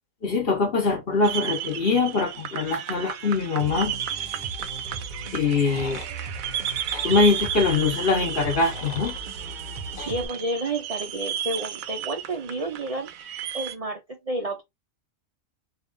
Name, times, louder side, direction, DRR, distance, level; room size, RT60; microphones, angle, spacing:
voice 1, 0.2-3.9 5.3-6.0 7.0-9.2, left 4 dB, 45° left, 1.3 m, -23 dB
sound 1, 1.2-13.7, right 10 dB, 85° right, 1.0 m, -33 dB
sound 2, 3.6-10.3, right 2 dB, 45° right, 0.7 m, -38 dB
sound 3, 5.4-6.1 6.9-7.1 8.3-9.2 10.0-10.1, left 4 dB, 75° left, 1.5 m, -40 dB
voice 2, 10.0-14.6, right 2 dB, 60° right, 0.3 m, -31 dB
3.5 x 2.4 x 3.7 m
omnidirectional pair, 1.4 m